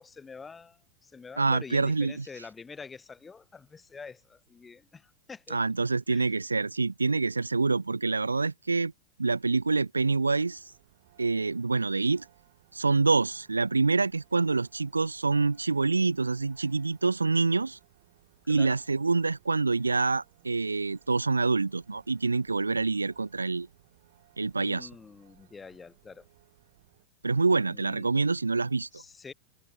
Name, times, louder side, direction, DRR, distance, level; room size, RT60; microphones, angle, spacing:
voice 1, 0.0-5.6 6.1-6.3 18.4-18.8 24.6-26.3 27.7-28.1 28.9-29.3, left 5 dB, 15° left, 2.2 m, -46 dB
voice 2, 1.4-2.2 5.5-8.9 9.2-10.6 11.2-12.3 12.7-17.8 18.5-23.7 24.4-24.9 27.2-29.0, right 3 dB, 80° right, 0.6 m, -26 dB
sound 1, 10.4-27.1, right 16 dB, 55° right, 7.7 m, -63 dB
figure-of-eight pair, 90°, 0 cm